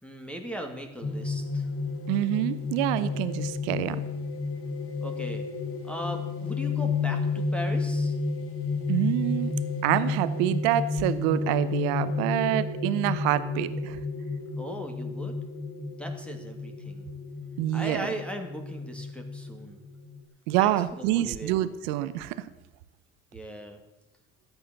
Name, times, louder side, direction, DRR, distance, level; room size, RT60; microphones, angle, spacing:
voice 1, 0.0-1.7 5.0-5.4 5.8-8.2 14.6-15.3 16.0-17.1 17.7-19.8 20.6-21.5 23.3-23.8, right 1 dB, 5° left, 4 dB, 2.6 m, -38 dB
sound 1, 1.0-20.2, left 4 dB, 50° left, 2.2 m, -31 dB
voice 2, 2.1-4.0 8.9-9.5 9.8-14.0 17.6-18.1 20.5-22.4, right 13 dB, 85° right, 14 dB, 0.8 m, -26 dB
13.5 x 9.4 x 7.1 m, 1.1 s
supercardioid pair, 70°, 29 cm